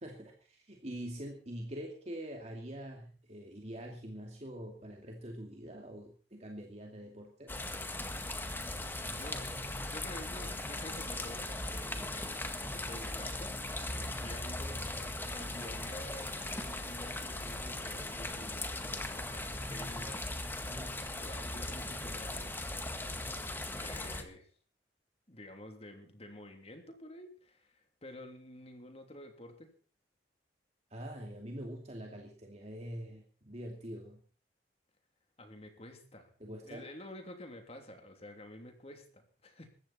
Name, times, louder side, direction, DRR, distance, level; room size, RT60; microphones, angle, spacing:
voice 1, 0.0-7.5 13.9-14.2 20.6-21.0 30.9-34.2 36.4-36.8, equal, 35° right, 1 dB, 2.5 m, -45 dB
sound 1, 7.5-24.2, left 2 dB, 10° left, 1.7 m, -39 dB
voice 2, 9.0-9.5 9.8-13.5 14.1-14.8 15.3-20.3 21.2-22.9 23.7-24.5 25.3-29.7 35.4-36.3 36.6-39.7, left 1 dB, 35° left, 5 dB, 3.1 m, -50 dB
21.0 x 15.0 x 4.4 m, 0.40 s
head